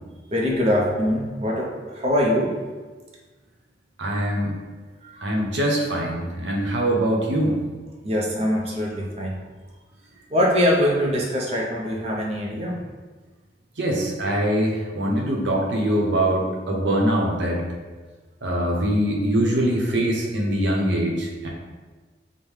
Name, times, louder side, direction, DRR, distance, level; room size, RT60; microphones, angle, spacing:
voice 1, 0.3-2.6 5.0-5.4 6.6-6.7 8.0-9.4 10.3-12.9, equal, 35° right, -3 dB, 0.5 m, -23 dB
voice 2, 4.0-4.5 5.2-7.6 13.8-17.6 18.4-21.5, right 1 dB, 90° right, -1 dB, 0.8 m, -23 dB
5.3 x 2.1 x 3.2 m, 1.3 s
head